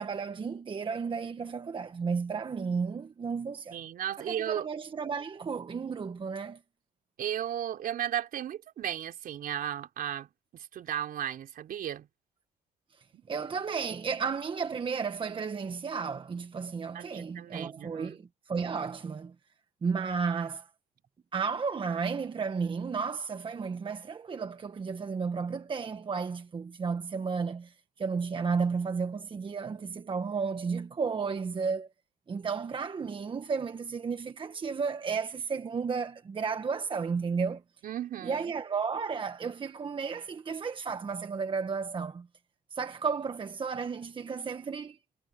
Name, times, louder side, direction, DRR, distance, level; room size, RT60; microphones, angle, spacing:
voice 1, 0.0-3.8 4.2-6.6 13.3-19.3 19.8-20.7 21.3-31.9 32.3-37.6 38.2-42.3 42.7-45.0, right 5 dB, 30° right, 1.4 m, -33 dB
voice 2, 3.7-4.7 7.2-10.3 10.5-12.1 13.1-13.2 16.9-18.2 37.8-38.5, right 10 dB, 60° right, 4.5 m, -35 dB
cardioid pair, 110°, 17 cm